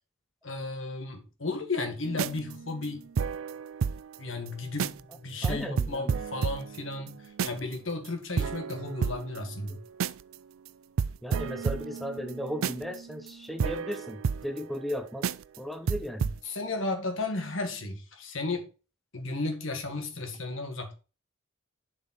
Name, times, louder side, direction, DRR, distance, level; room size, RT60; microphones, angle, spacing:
voice 1, 0.4-3.1 4.2-9.8 16.5-18.7 19.1-20.9, left 3 dB, 70° left, 1.8 m, -34 dB
sound 1, 2.0-4.2 4.5-4.6 4.8-5.1 5.4-7.7 8.0-8.1 8.4-10.3 10.7-10.8 11.0-14.9 15.2-15.6 15.9-16.4, right 6 dB, 75° right, 0.4 m, -32 dB
voice 2, 5.4-6.2 11.2-16.4, equal, ahead, 0.6 m, -36 dB
7.3 x 5.4 x 4.3 m
head